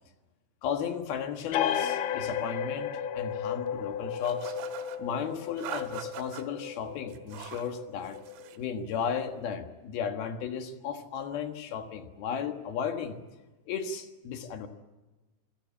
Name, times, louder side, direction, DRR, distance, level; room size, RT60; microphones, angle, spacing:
voice 1, 0.6-4.5 5.0-8.2 8.6-13.2 13.7-14.7, left 7 dB, 65° left, 7 dB, 3.0 m, -34 dB
sound 1, 1.5-8.7, left 8 dB, 90° left, 1.9 m, -34 dB
sound 2, 4.2-5.0 5.6-6.4 7.1-7.7 8.0-8.6, right 11 dB, 75° right, 3.5 m, -42 dB
27.0 x 17.5 x 8.7 m, 1.2 s
omnidirectional pair, 5.4 m